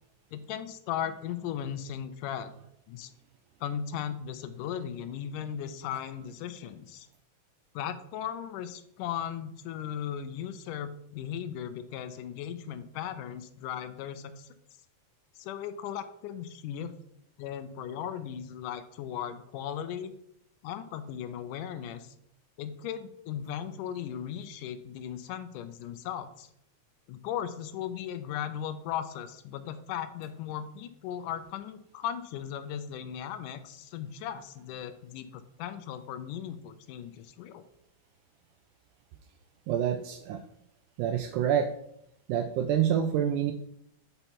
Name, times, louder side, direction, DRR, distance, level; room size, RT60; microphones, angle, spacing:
voice 1, 0.3-2.5 2.9-3.1 3.6-7.1 7.8-14.5 15.4-16.9 17.4-20.1 20.6-22.1 22.6-26.5 27.1-37.6, left 9 dB, 85° left, 11 dB, 2.1 m, -37 dB
voice 2, 39.7-40.4 41.0-41.7 42.3-43.5, right 9 dB, 80° right, 7 dB, 1.9 m, -27 dB
6.6 x 5.7 x 4.5 m, 0.75 s
omnidirectional pair, 3.7 m